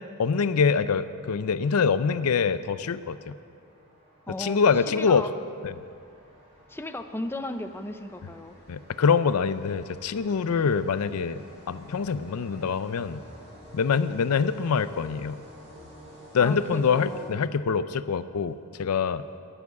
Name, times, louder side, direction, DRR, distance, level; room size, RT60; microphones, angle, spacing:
voice 1, 0.2-3.3 4.4-5.3 5.6-5.7 8.7-11.4 11.7-13.2 13.7-15.4 16.3-19.2, left 6 dB, 80° left, 14 dB, 0.5 m, -25 dB
sound 1, 0.9-17.8, equal, 30° right, 3.7 m, -52 dB
voice 2, 4.3-5.3 6.7-8.5 10.5-10.6 16.4-17.3, left 1 dB, 10° left, 8 dB, 0.5 m, -35 dB
11.0 x 11.0 x 8.2 m, 2.3 s
head